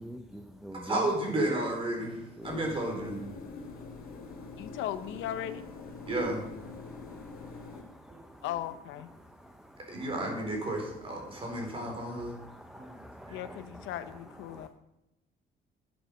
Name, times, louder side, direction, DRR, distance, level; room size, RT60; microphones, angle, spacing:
voice 1, 0.0-1.0 2.4-2.7 6.0-6.1 6.7-8.4 9.4-9.7 11.3-13.9 14.5-14.7, equal, 5° right, 5 dB, 0.7 m, -47 dB
voice 2, 0.8-2.2 2.4-3.2 6.1-6.4 8.1-8.2 9.9-12.3 12.7-12.9 13.2-13.4, right 1 dB, 30° right, 1 dB, 4.0 m, -32 dB
sound 1, 2.4-7.8, left 4 dB, 50° left, 2.2 m, -45 dB
voice 3, 4.6-5.6 8.4-9.1 13.3-14.7, left 11 dB, 85° left, 11 dB, 0.9 m, -37 dB
10.0 x 9.3 x 6.3 m, 0.88 s
cardioid pair, 145°, 19 cm